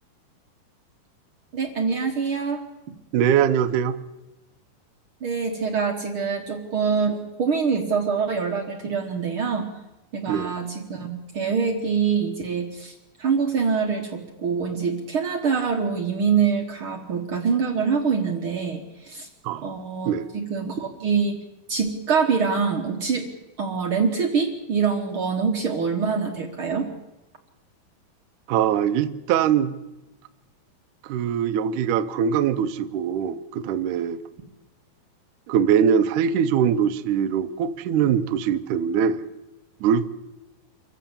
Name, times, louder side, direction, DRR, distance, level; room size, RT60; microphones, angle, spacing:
voice 1, 1.5-2.6 5.2-9.7 10.1-19.3 19.6-21.4 21.7-23.3 23.6-26.9, right 5 dB, 55° right, 4 dB, 1.5 m, -25 dB
voice 2, 3.1-4.0 10.3-10.5 19.4-19.7 20.1-20.3 28.5-29.8 31.1-34.2 35.5-39.2 39.8-40.1, right 8 dB, 70° right, 11 dB, 2.0 m, -22 dB
26.5 x 15.0 x 7.3 m, 1.0 s
omnidirectional pair, 4.4 m